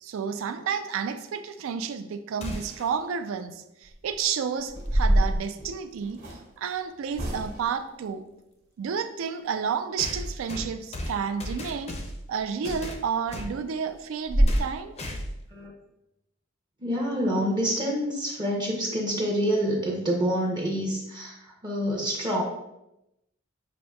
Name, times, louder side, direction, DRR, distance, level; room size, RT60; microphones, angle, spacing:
voice 1, 0.0-6.2 6.6-8.2 8.8-11.9 12.3-14.9, right 6 dB, 80° right, 10 dB, 0.3 m, -31 dB
sound 1, 2.4-3.0 5.1-5.2 6.3-6.4 10.0-12.3 12.6-13.6 14.5-14.7 15.0-15.5, left 1 dB, 30° left, 0.4 m, -36 dB
sound 2, 3.8-4.1 4.7-6.4 7.1-7.8 12.3-12.5 12.9-13.0 13.4-13.5 13.9-14.0 14.3-14.6, right 1 dB, 45° right, 1.1 m, -25 dB
voice 2, 16.8-21.4 21.6-22.4, equal, 20° right, -2 dB, 0.5 m, -27 dB
5.9 x 2.6 x 2.2 m, 0.89 s
head